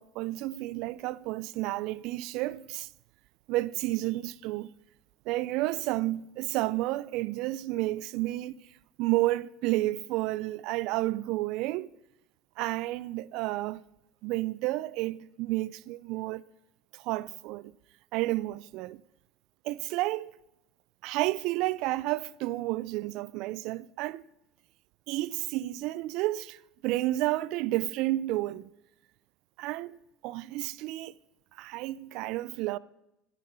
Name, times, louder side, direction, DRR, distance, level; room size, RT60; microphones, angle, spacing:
voice 1, 0.0-2.9 3.5-4.7 5.3-8.6 9.0-11.9 12.6-13.8 14.2-16.4 16.9-17.7 18.1-19.0 19.6-20.3 21.0-24.2 25.1-28.7 29.6-30.0 30.2-31.1 31.6-32.8, right 17 dB, 70° right, 0.3 m, -31 dB
14.0 x 9.1 x 5.4 m
supercardioid pair, 85°, 0 cm